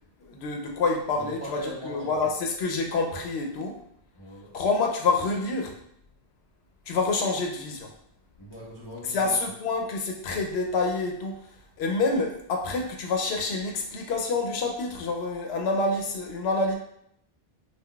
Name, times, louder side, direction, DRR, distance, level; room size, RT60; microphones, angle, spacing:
voice 1, 0.2-1.6 1.8-3.8 4.5-5.8 6.9-7.9 9.1-16.8, left 3 dB, 80° left, 3 dB, 0.8 m, -27 dB
voice 2, 1.1-2.3 4.1-4.5 8.4-9.4, left 1 dB, 30° left, -7 dB, 0.6 m, -40 dB
2.3 x 2.2 x 3.6 m, 0.72 s
omnidirectional pair, 1.1 m